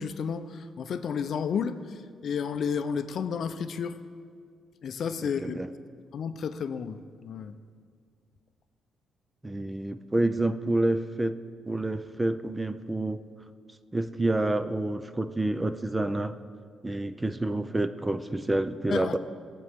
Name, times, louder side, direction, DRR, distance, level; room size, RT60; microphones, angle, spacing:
voice 1, 0.0-4.0 4.8-5.6 6.1-7.6 18.9-19.2, left 6 dB, 55° left, 10 dB, 0.5 m, -32 dB
voice 2, 5.2-5.7 9.4-11.4 11.7-13.2 13.9-16.4 16.8-19.2, right 2 dB, 10° right, 11 dB, 0.4 m, -28 dB
19.5 x 7.6 x 3.6 m, 2.1 s
cardioid pair, 125°, 0 cm